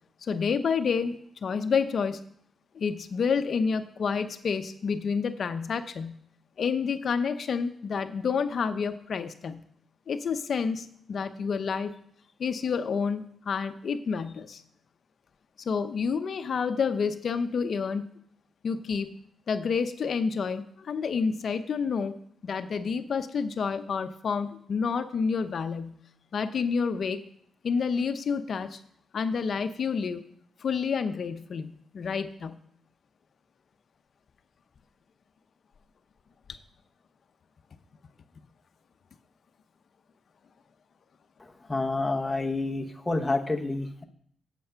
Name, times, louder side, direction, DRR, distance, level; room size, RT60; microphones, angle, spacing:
voice 1, 0.2-2.2 2.7-6.2 6.6-9.6 10.1-11.9 12.4-14.6 15.6-18.1 18.6-19.1 19.5-22.2 22.4-26.0 26.3-27.2 27.6-28.8 29.1-30.2 30.6-32.6, left 5 dB, 50° left, 9 dB, 0.7 m, -29 dB
voice 2, 41.7-44.0, left 2 dB, 10° left, 3 dB, 0.9 m, -28 dB
8.3 x 7.7 x 5.7 m, 0.65 s
wide cardioid pair, 145°, 0 cm